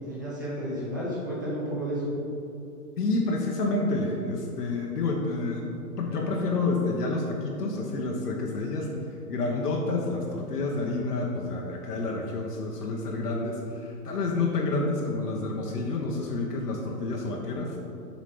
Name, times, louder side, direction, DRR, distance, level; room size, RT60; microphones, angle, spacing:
voice 1, 0.1-2.1, equal, 15° right, -9 dB, 0.6 m, -32 dB
voice 2, 3.0-17.8, left 3 dB, 80° left, -1 dB, 1.1 m, -29 dB
7.3 x 4.1 x 5.1 m, 2.7 s
hypercardioid pair, 180°, 46 cm